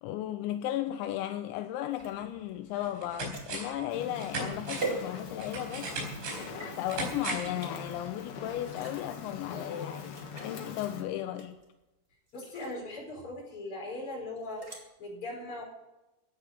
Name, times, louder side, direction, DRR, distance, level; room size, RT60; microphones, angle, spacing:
voice 1, 0.0-5.9 6.8-11.6, left 12 dB, 85° left, 3.0 m, -35 dB
sound 1, 1.9-5.6 6.1-6.7 7.4-7.7 8.6-9.2 9.6-9.7 10.0-10.6 11.3-11.8 12.3-12.8 14.4-14.8, right 3 dB, 20° right, 1.9 m, -42 dB
sound 2, 2.2-2.3 2.8-3.8 4.2-7.6 7.9-8.0, right 2 dB, 75° right, 6.7 m, -38 dB
Fire, 3.9-11.0, left 5 dB, 60° left, 3.5 m, -43 dB
voice 2, 12.3-15.6, left 2 dB, 30° left, 5.4 m, -40 dB
15.5 x 9.6 x 6.7 m
omnidirectional pair, 5.2 m